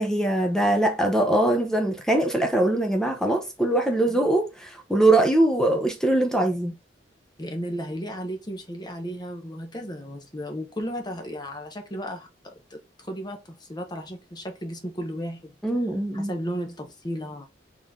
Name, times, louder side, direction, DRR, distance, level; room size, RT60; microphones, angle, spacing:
voice 1, 0.0-6.7 15.6-16.3, right 1 dB, 5° left, 0.7 m, -22 dB
voice 2, 7.4-12.8 13.1-15.5 16.1-17.5, equal, 25° left, 1.0 m, -34 dB
4.4 x 3.1 x 3.6 m
head